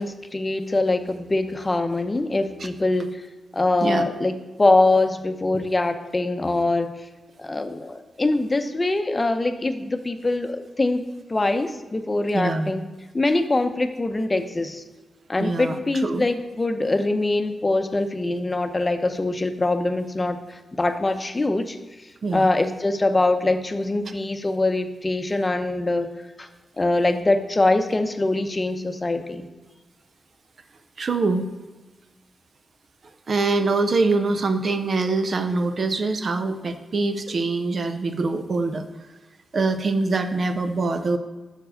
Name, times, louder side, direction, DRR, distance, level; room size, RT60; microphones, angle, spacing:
voice 1, 0.0-3.2 3.5-6.9 7.4-11.0 11.3-12.8 13.1-14.8 15.3-21.8 22.3-26.1 26.4-26.5 26.8-29.5 37.3-37.4, left 2 dB, 30° left, 7 dB, 0.7 m, -23 dB
voice 2, 12.3-12.7 15.4-16.3 22.2-22.5 31.0-31.4 33.3-38.9 39.5-41.2, right 3 dB, 60° right, 8 dB, 0.6 m, -24 dB
6.1 x 4.6 x 6.6 m, 1.2 s
cardioid pair, 60°, 0 cm